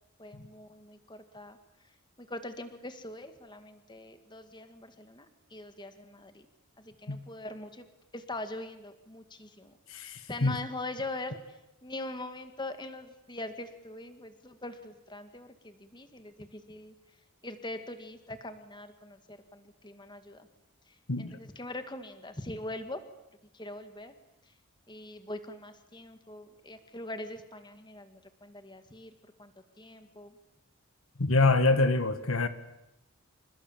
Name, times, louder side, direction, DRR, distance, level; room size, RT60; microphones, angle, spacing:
voice 1, 0.2-1.6 2.2-6.5 6.8-7.9 8.1-16.9 17.4-20.5 21.2-23.0 23.5-24.1 24.9-29.1 29.4-29.5 29.8-30.3, left 2 dB, 20° left, 8 dB, 2.0 m, -42 dB
voice 2, 9.9-10.6 21.1-21.4 31.2-32.5, left 3 dB, 65° left, 10 dB, 1.7 m, -25 dB
28.5 x 27.5 x 7.4 m, 0.91 s
head